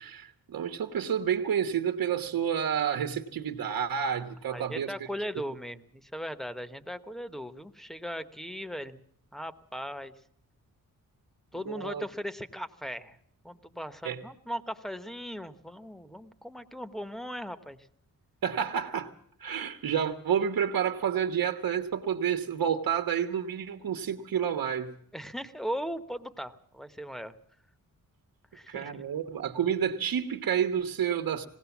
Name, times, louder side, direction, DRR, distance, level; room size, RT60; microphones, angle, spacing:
voice 1, 0.0-4.9 11.7-12.0 14.0-14.2 18.4-19.1 19.4-24.9 28.7-31.5, right 8 dB, 85° right, 6 dB, 1.3 m, -29 dB
voice 2, 4.5-9.0 9.3-10.1 11.5-13.2 13.4-17.9 25.1-27.3 28.5-29.0, equal, ahead, 11 dB, 1.0 m, -38 dB
20.5 x 17.5 x 7.1 m, 0.66 s
wide cardioid pair, 145°, 34 cm